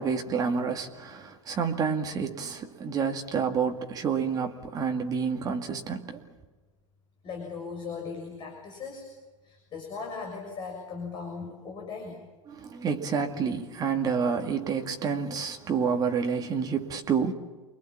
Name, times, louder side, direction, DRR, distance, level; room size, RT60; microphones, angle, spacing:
voice 1, 0.0-6.2 12.5-17.3, right 6 dB, 20° right, 2.3 m, -29 dB
voice 2, 7.2-9.1 9.4-12.3, left 5 dB, 25° left, 6.4 m, -38 dB
29.0 x 24.0 x 7.3 m
figure-of-eight pair, 95°, 17 cm